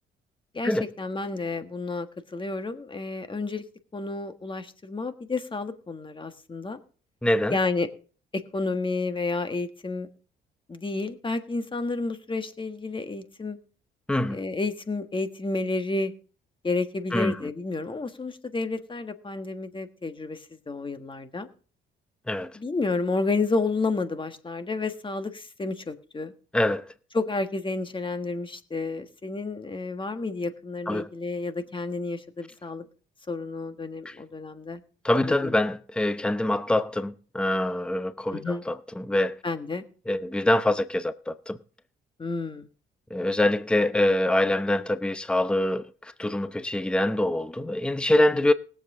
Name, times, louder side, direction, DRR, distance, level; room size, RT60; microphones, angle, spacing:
voice 1, 0.5-3.6 3.9-6.8 7.5-7.9 8.3-10.1 10.7-13.6 14.3-16.1 16.6-21.5 22.5-26.3 27.1-32.8 33.3-34.8 35.3-35.5 38.3-38.6 39.4-39.8 42.2-42.7, left 3 dB, 25° left, 1.4 m, -30 dB
voice 2, 7.2-7.6 14.1-14.4 17.1-17.5 22.3-22.5 26.5-26.8 30.9-31.1 34.0-34.2 35.0-39.3 40.1-41.6 43.1-48.5, left 1 dB, 5° left, 0.7 m, -25 dB
20.0 x 7.6 x 3.7 m
cardioid pair, 90°, 20 cm